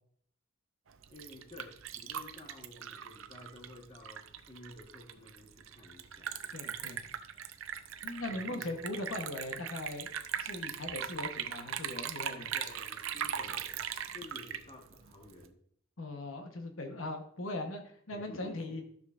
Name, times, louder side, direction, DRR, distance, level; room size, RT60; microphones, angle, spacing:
Liquid, 0.9-15.5, right 8 dB, 75° right, 0.6 m, -40 dB
voice 1, 1.1-6.7 8.3-9.1 12.3-13.8 14.1-15.6 18.1-18.8, left 2 dB, 30° left, 2 dB, 1.4 m, -52 dB
voice 2, 6.5-7.0 8.0-10.1 10.4-12.5 16.0-17.8 18.1-18.8, left 2 dB, 85° left, 4 dB, 1.1 m, -39 dB
13.0 x 6.5 x 2.5 m, 0.65 s
head